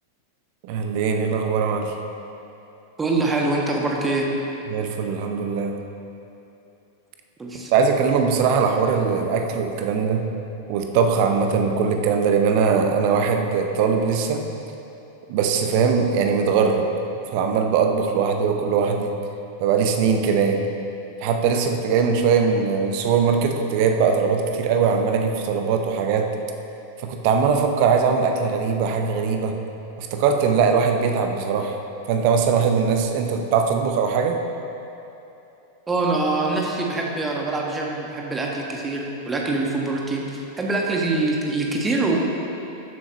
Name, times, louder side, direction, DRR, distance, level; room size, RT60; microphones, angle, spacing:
voice 1, 0.6-1.9 4.7-5.8 7.7-10.3 10.7-14.5 15.3-16.9 17.3-19.1 19.6-20.6 21.2-26.3 27.0-29.5 30.0-31.8 32.1-34.4, right 6 dB, 45° right, 4 dB, 0.8 m, -21 dB
voice 2, 3.0-4.3 7.4-7.7 35.9-42.2, right 2 dB, 15° right, -1 dB, 1.4 m, -24 dB
14.0 x 7.8 x 3.0 m, 2.9 s
figure-of-eight pair, 90°, 0 cm